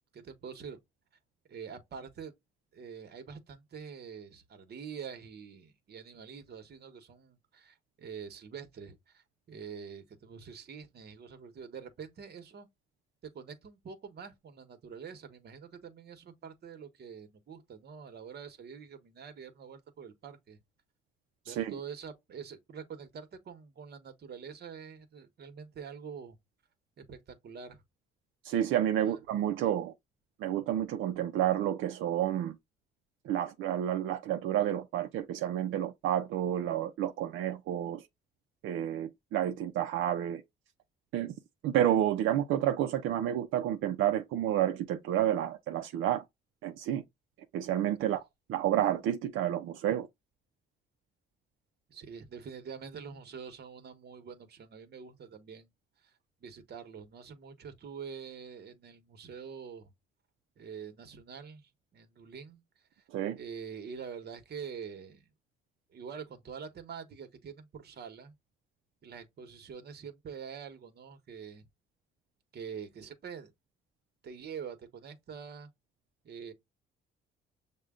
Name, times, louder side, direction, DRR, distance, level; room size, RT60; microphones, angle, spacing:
voice 1, 0.1-0.8 1.5-2.3 2.7-12.7 13.3-20.6 21.5-26.4 27.0-27.8 29.1-29.2 51.9-55.7 56.0-56.1 56.4-59.9 60.6-62.6 63.3-65.3 65.9-68.3 69.0-71.6 72.5-73.5 74.2-75.7 76.2-76.5, right 6 dB, 55° right, 1.2 m, -45 dB
voice 2, 21.5-21.8 28.4-29.9 30.4-32.6 33.2-38.0 38.6-40.4 41.1-41.3 41.6-46.2 46.6-47.0 47.5-48.2 48.5-50.1 63.1-63.4, right 11 dB, 85° right, 0.5 m, -30 dB
6.4 x 2.3 x 3.6 m
cardioid pair, 90°, 20 cm